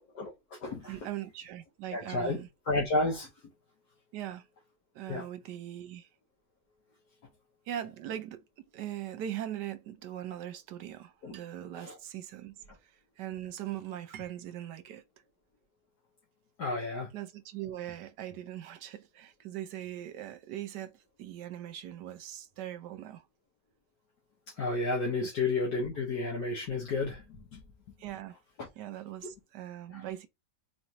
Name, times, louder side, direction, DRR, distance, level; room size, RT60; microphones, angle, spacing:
voice 1, 0.2-1.0 1.9-3.3 5.1-5.3 11.2-11.3 11.7-12.0 16.6-17.1 24.6-27.6 28.6-28.7 29.9-30.0, left 3 dB, 70° left, 1.7 m, -32 dB
voice 2, 0.8-2.5 4.1-4.5 4.9-6.1 7.7-8.4 8.7-12.6 12.8-15.0 17.1-20.9 21.2-23.2 28.0-28.4 28.8-30.3, right 11 dB, 80° right, 1.3 m, -40 dB
4.1 x 3.2 x 2.8 m
omnidirectional pair, 1.8 m